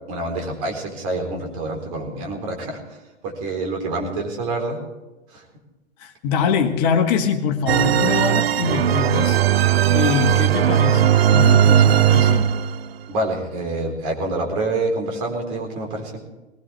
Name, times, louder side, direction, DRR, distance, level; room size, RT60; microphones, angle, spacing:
voice 1, 0.1-2.8 3.2-4.8 5.3-5.4 13.1-16.1, right 2 dB, 35° right, 2 dB, 4.0 m, -26 dB
voice 2, 6.0-9.4 9.9-12.5, left 6 dB, 35° left, 5 dB, 1.8 m, -23 dB
sound 1, 7.7-12.9, right 10 dB, 60° right, 0.6 m, -17 dB
19.5 x 18.5 x 3.4 m, 1.1 s
figure-of-eight pair, 110°, 35 cm